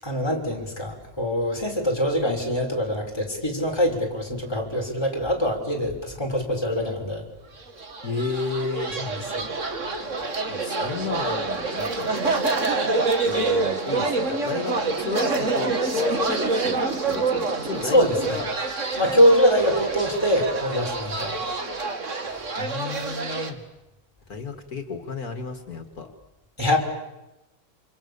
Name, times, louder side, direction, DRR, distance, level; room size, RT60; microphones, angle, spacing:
voice 1, 0.0-7.2 9.0-9.1 9.3-9.4 17.8-18.4 18.9-21.4 26.6-26.8, equal, 15° left, 0 dB, 6.1 m, -23 dB
sound 1, 7.7-23.5, right 3 dB, 55° right, 2.4 m, -27 dB
voice 2, 8.0-8.9 10.5-12.1 13.3-18.5 22.6-23.6 24.3-26.1, left 4 dB, 75° left, 6 dB, 2.6 m, -32 dB
29.0 x 27.0 x 7.2 m, 0.97 s
omnidirectional pair, 1.6 m